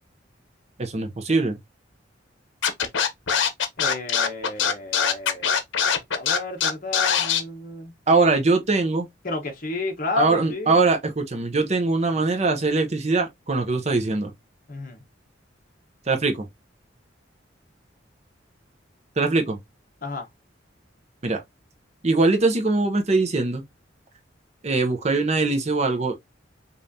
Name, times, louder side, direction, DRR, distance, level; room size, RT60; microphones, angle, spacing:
voice 1, 0.8-1.6 8.1-9.1 10.2-14.3 16.1-16.5 19.2-19.6 21.2-21.4 22.0-23.6 24.6-26.2, right 3 dB, 35° right, 0.7 m, -22 dB
Scratching (performance technique), 2.6-7.4, left 7 dB, 85° left, 0.9 m, -22 dB
voice 2, 3.8-5.5 6.2-7.9 9.2-10.8 14.7-15.0 20.0-20.3, left 3 dB, 45° left, 1.2 m, -31 dB
5.2 x 2.6 x 2.7 m
head